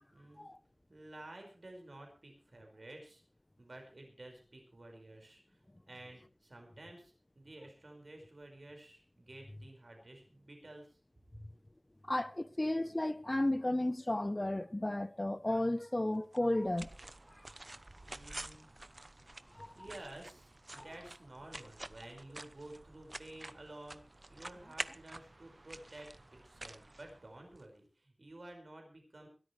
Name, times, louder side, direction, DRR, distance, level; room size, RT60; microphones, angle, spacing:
voice 1, 0.1-0.5 0.9-3.2 3.6-11.0 18.0-18.7 19.8-24.0 24.3-29.3, right 1 dB, 85° right, 5.2 m, -52 dB
voice 2, 12.1-16.9 18.3-18.5 19.6-19.7, left 1 dB, 35° left, 0.8 m, -33 dB
sound 1, 16.3-27.6, right 2 dB, 55° right, 0.8 m, -49 dB
23.0 x 13.0 x 3.3 m
wide cardioid pair, 55°, 0 cm